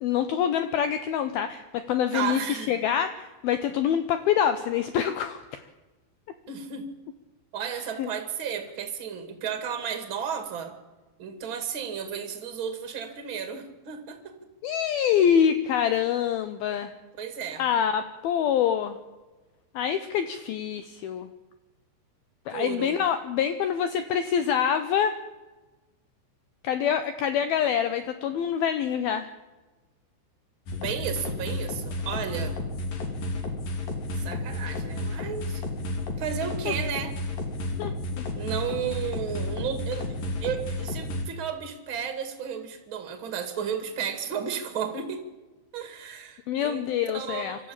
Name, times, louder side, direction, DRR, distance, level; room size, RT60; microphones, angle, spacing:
voice 1, 0.0-5.6 8.0-8.1 14.6-16.9 17.6-19.0 19.8-21.3 22.5-25.2 26.6-29.3 36.7-36.8 37.8-38.2 46.5-47.6, left 8 dB, 85° left, 10 dB, 2.1 m, -26 dB
voice 2, 2.1-2.8 6.5-6.9 7.5-10.7 11.2-14.3 17.2-17.6 22.5-23.0 30.7-32.6 34.1-35.6 36.2-37.1 38.4-40.1 40.4-45.2 45.7-46.9 47.1-47.7, right 7 dB, 40° right, 8 dB, 2.0 m, -33 dB
sound 1, 30.7-41.3, left 2 dB, 50° left, 3.8 m, -32 dB
24.5 x 13.5 x 8.7 m, 1.2 s
omnidirectional pair, 5.5 m